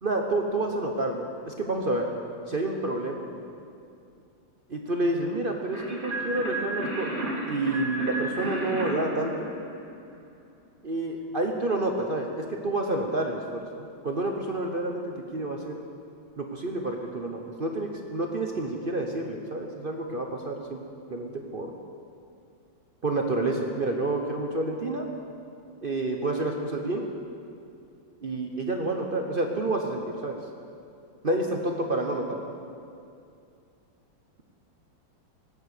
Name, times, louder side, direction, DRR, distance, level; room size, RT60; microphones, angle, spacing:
voice 1, 0.0-2.1 2.5-3.3 4.7-7.1 7.5-9.5 10.8-15.8 16.4-20.8 21.1-21.7 23.0-25.1 25.8-27.1 28.2-30.4 31.2-32.6, right 2 dB, 45° right, 2 dB, 0.7 m, -29 dB
sound 1, 5.7-10.2, right 1 dB, 25° right, 2.1 m, -33 dB
18.0 x 9.0 x 6.6 m, 2.5 s
omnidirectional pair, 2.2 m